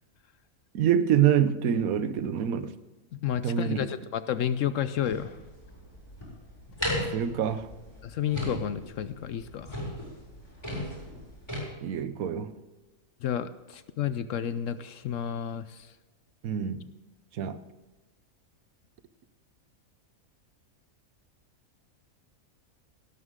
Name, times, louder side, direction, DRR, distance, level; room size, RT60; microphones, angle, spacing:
voice 1, 0.7-2.7 3.4-3.9 7.1-7.7 11.8-12.5 16.4-16.8 17.3-17.6, right 9 dB, 70° right, 1.2 m, -26 dB
voice 2, 3.1-5.4 8.0-9.8 13.2-15.9, left 9 dB, 65° left, 0.9 m, -31 dB
sound 1, 5.0-11.6, left 1 dB, 15° left, 6.0 m, -36 dB
17.5 x 12.5 x 3.7 m
omnidirectional pair, 1.6 m